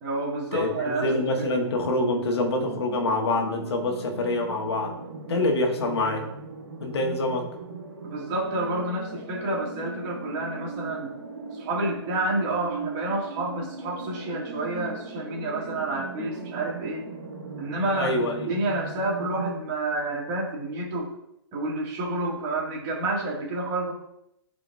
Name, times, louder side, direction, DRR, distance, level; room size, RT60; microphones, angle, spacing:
voice 1, 0.0-1.1 1.4-1.5 8.0-11.1 11.5-17.0 17.6-18.1 18.5-21.1 21.5-23.9, right 2 dB, 30° right, -3 dB, 2.4 m, -29 dB
voice 2, 0.5-4.9 5.3-6.3 6.8-7.5 17.9-18.5, left 2 dB, 65° left, 2 dB, 1.5 m, -26 dB
sound 1, 0.6-19.5, right 3 dB, 75° right, 2.0 m, -38 dB
10.5 x 4.9 x 2.7 m, 0.78 s
hypercardioid pair, 150°, 14 cm